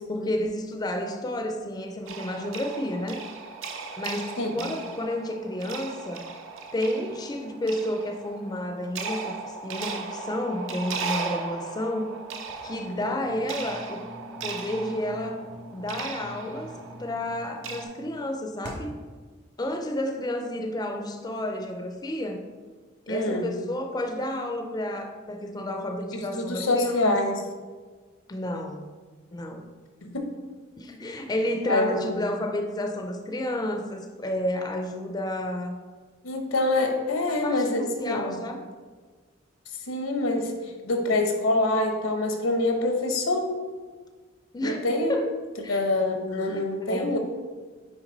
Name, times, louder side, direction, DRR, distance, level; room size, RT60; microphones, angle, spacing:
voice 1, 0.1-3.2 4.0-6.3 6.7-12.2 12.6-14.0 14.4-15.4 15.7-18.9 19.6-22.4 23.1-27.2 28.3-28.9 29.3-29.7 30.8-35.8 37.3-38.6 44.5-45.3 45.6-45.8 46.5-47.2, left 1 dB, 20° left, 4 dB, 0.4 m, -31 dB
sound 1, 2.1-17.8, right 4 dB, 70° right, 0.7 m, -37 dB
sound 2, 12.5-19.1, equal, 55° right, 1.6 m, -44 dB
voice 2, 23.1-23.5 26.1-27.4 30.0-30.3 31.7-32.2 36.2-38.4 39.9-43.6 44.6-45.1 45.7-47.2, left 2 dB, 85° left, 5 dB, 0.9 m, -26 dB
6.0 x 4.6 x 3.9 m, 1.4 s
head